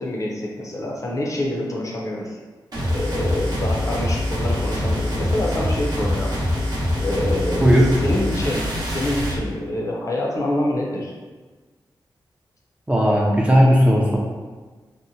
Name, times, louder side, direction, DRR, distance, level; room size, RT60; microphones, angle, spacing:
voice 1, 0.0-2.4 2.9-6.3 7.0-7.7 8.0-11.1, left 1 dB, 45° left, -2 dB, 0.5 m, -26 dB
sound 1, 2.7-9.4, left 1 dB, 60° right, 0.7 m, -24 dB
voice 2, 7.6-8.0 12.9-14.2, equal, 15° right, -3 dB, 0.4 m, -16 dB
2.8 x 2.0 x 2.6 m, 1.4 s
wide cardioid pair, 95°, 8 cm